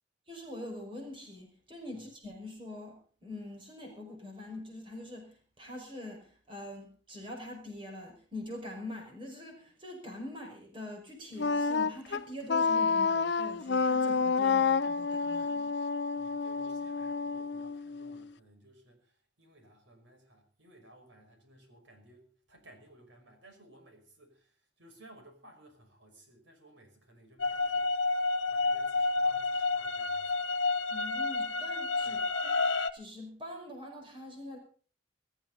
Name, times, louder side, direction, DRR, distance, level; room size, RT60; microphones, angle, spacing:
voice 1, 0.3-15.8 30.9-32.5 32.9-34.6, left 1 dB, 25° right, 2 dB, 5.7 m, -44 dB
Wind instrument woodwind instrument, 11.4-18.3, left 5 dB, 65° left, 0.6 m, -29 dB
voice 2, 16.2-30.5 32.0-32.2, right 1 dB, 85° right, 4 dB, 5.8 m, -58 dB
sound 1, 27.4-32.9, left 3 dB, 85° left, 1.2 m, -30 dB
21.0 x 14.0 x 4.1 m, 0.43 s
head